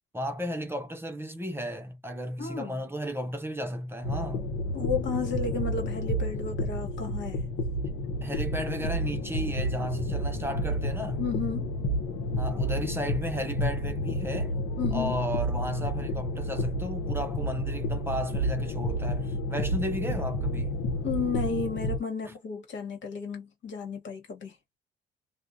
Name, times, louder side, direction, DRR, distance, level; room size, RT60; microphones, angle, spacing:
voice 1, 0.1-4.5 8.2-11.2 12.4-14.5 14.9-20.8 22.2-22.3, equal, 10° right, 0.7 m, -34 dB
voice 2, 2.4-2.8 4.7-7.5 11.2-11.7 14.8-15.2 21.0-24.6, left 5 dB, 65° left, 1.3 m, -33 dB
sound 1, 4.0-22.0, left 1 dB, 85° left, 0.9 m, -30 dB
2.4 x 2.2 x 2.6 m
cardioid pair, 90°, 20 cm